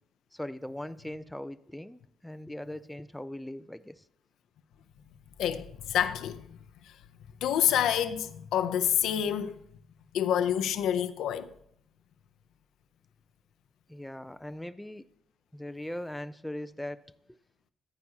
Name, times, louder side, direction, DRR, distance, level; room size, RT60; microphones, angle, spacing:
voice 1, 0.3-4.0 13.9-15.1 15.5-17.4, left 1 dB, 5° left, 0.3 m, -40 dB
voice 2, 5.4-6.5 6.8-7.0 7.4-9.6 10.1-11.5, left 10 dB, 80° left, 0.5 m, -28 dB
13.0 x 9.6 x 2.8 m
cardioid pair, 90°, 0 cm